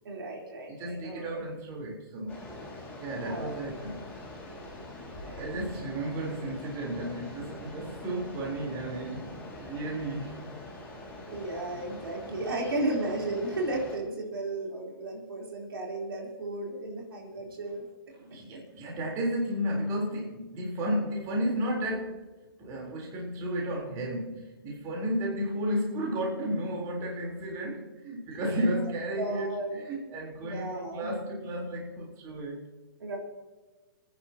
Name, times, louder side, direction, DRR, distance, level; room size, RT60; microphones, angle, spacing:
voice 1, 0.0-1.4 3.2-3.5 5.2-5.6 11.3-17.9 18.5-18.6 28.5-28.7 29.1-29.8 30.4-31.1 33.0-33.2, right 2 dB, 85° right, -1 dB, 4.0 m, -34 dB
voice 2, 0.7-2.4 3.0-4.1 5.4-10.4 18.1-22.3 22.6-32.6, equal, 25° right, -2 dB, 4.0 m, -33 dB
sound 1, 2.3-14.0, left 1 dB, 10° left, 5.0 m, -44 dB
29.5 x 10.5 x 3.0 m, 1.2 s
hypercardioid pair, 150°, 12 cm